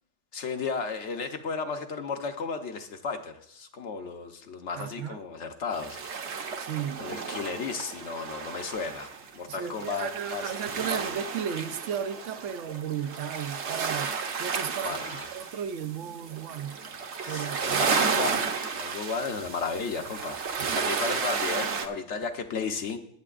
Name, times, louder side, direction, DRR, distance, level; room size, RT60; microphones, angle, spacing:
voice 1, 0.3-6.0 7.0-11.2 14.8-15.3 17.2-23.0, left 5 dB, 75° left, 1.2 m, -34 dB
voice 2, 4.8-5.2 6.6-7.0 9.5-14.1 14.4-16.8 17.3-17.9, right 8 dB, 90° right, 1.0 m, -34 dB
sound 1, 5.7-21.9, right 5 dB, 70° right, 1.1 m, -32 dB
21.5 x 7.7 x 2.5 m
omnidirectional pair, 1.2 m